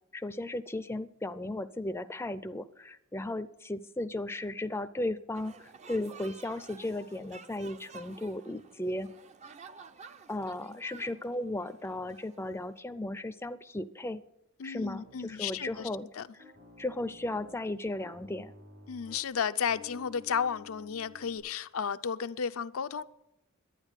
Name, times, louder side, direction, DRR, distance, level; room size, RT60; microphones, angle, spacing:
voice 1, 0.1-9.1 10.3-14.2 14.6-16.1 16.8-18.5, left 1 dB, 10° left, 11 dB, 0.5 m, -35 dB
sound 1, 5.3-12.8, right 4 dB, 30° right, 0.6 m, -52 dB
voice 2, 14.6-16.3 18.9-23.0, left 7 dB, 75° left, 11 dB, 0.5 m, -33 dB
Piano, 14.9-15.9 16.4-17.6 18.0-21.4, left 2 dB, 70° right, 6.3 m, -52 dB
11.5 x 9.5 x 8.2 m, 0.81 s
head